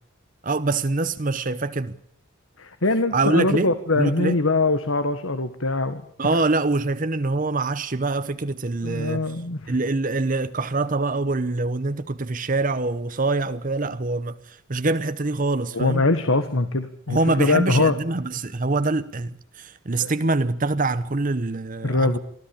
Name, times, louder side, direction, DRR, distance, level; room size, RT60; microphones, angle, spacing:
voice 1, 0.4-1.9 3.1-3.7 4.0-4.4 6.2-9.4 9.7-16.1 17.1-22.2, right 3 dB, 40° right, 0.8 m, -24 dB
voice 2, 2.6-6.0 8.8-9.7 15.7-17.9 20.0-20.1 21.8-22.2, left 2 dB, 80° left, 1.6 m, -22 dB
24.0 x 14.5 x 8.9 m
head